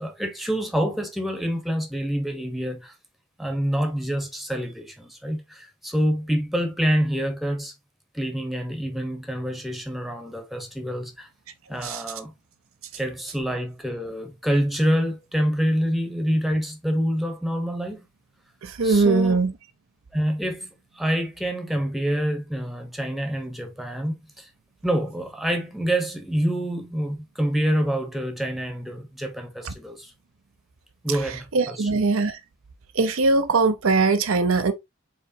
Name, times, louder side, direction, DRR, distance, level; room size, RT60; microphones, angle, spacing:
voice 1, 0.0-2.9 3.4-7.7 8.1-11.3 11.7-12.3 12.9-18.1 18.8-19.4 20.1-20.7 21.0-24.5 24.8-30.1 31.0-31.9, equal, ahead, 1.0 m, -26 dB
voice 2, 18.6-19.5 29.6-29.7 31.5-32.4 32.9-34.7, right 3 dB, 70° right, 0.7 m, -21 dB
4.7 x 4.0 x 2.7 m
head